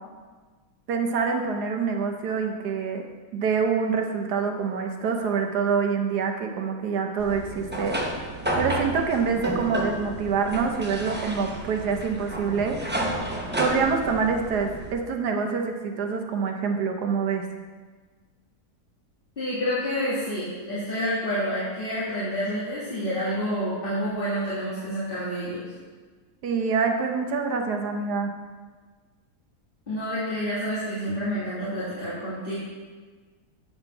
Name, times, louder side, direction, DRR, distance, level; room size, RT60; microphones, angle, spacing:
voice 1, 0.9-3.0 3.3-8.0 8.6-13.0 13.6-17.4 26.4-28.3, right 5 dB, 75° right, 3 dB, 1.3 m, -26 dB
sound 1, 7.2-14.9, right 1 dB, 15° right, 0.3 m, -31 dB
voice 2, 19.4-25.6 29.9-32.5, equal, 30° left, -11 dB, 2.2 m, -28 dB
8.9 x 4.3 x 5.7 m, 1.4 s
omnidirectional pair, 1.8 m